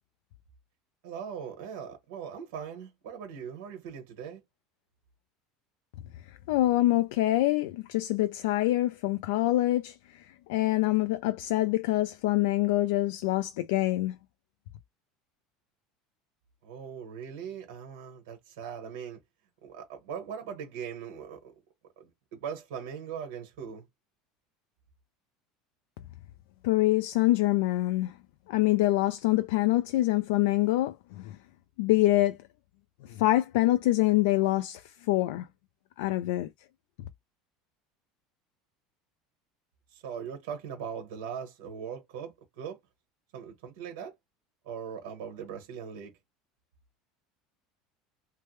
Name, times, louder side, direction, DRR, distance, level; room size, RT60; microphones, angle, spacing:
voice 1, 1.0-4.4 16.6-19.2 19.6-21.5 22.0-23.8 39.9-42.8 43.3-44.1 44.6-46.1, right 7 dB, 85° right, 1.2 m, -40 dB
voice 2, 6.5-9.9 10.5-14.1 26.6-28.1 28.5-30.9 31.8-32.3 33.2-34.8 35.1-35.4 36.0-36.5, left 16 dB, 80° left, 0.3 m, -25 dB
3.2 x 2.1 x 3.1 m
cardioid pair, 150°, 0 cm